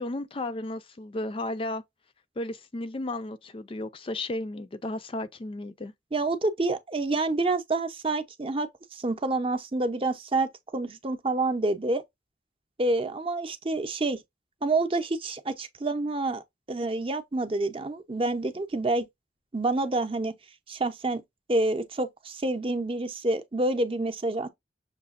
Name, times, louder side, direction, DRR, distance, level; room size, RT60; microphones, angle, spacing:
voice 1, 0.0-1.8 2.4-5.9, left 2 dB, 30° left, 0.4 m, -34 dB
voice 2, 6.1-12.0 12.8-14.2 14.6-19.1 19.5-20.3 20.7-21.2 21.5-24.5, right 2 dB, 30° right, 0.6 m, -28 dB
6.6 x 2.8 x 2.5 m
head